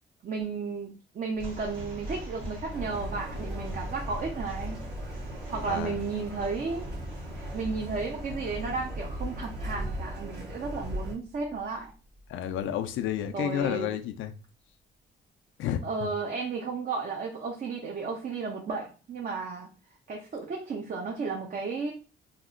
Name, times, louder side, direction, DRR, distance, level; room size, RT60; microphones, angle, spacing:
voice 1, 0.2-4.8 5.5-6.9 7.5-11.9 13.3-13.9 15.8-19.7 20.1-21.9, right 4 dB, 45° right, 0.7 m, -33 dB
sound 1, 1.3-12.6, equal, 80° right, 1.2 m, -41 dB
sound 2, 2.7-11.2, right 1 dB, 60° right, 1.4 m, -39 dB
voice 2, 12.3-14.3 15.6-15.8, left 10 dB, 75° left, 0.4 m, -30 dB
2.9 x 2.1 x 3.6 m
cardioid pair, 90°, 20 cm